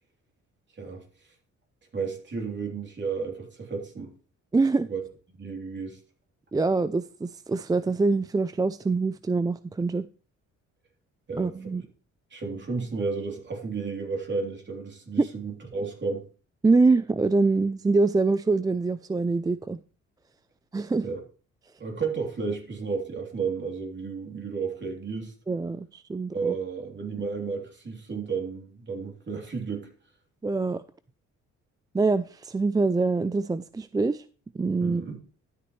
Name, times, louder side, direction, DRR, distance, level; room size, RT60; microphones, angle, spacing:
voice 1, 0.7-1.0 1.9-4.1 4.8-5.0 5.4-6.0 11.3-11.7 12.3-16.3 21.0-21.2 21.8-25.3 26.3-29.9 34.8-35.2, right 4 dB, 35° right, 3.4 m, -32 dB
voice 2, 4.5-4.9 6.5-10.1 11.4-11.8 15.2-15.3 16.6-19.8 20.7-21.1 25.5-26.5 30.4-30.8 31.9-34.2 34.5-35.0, right 3 dB, 15° right, 0.3 m, -24 dB
12.5 x 8.6 x 3.2 m
cardioid pair, 90°, 30 cm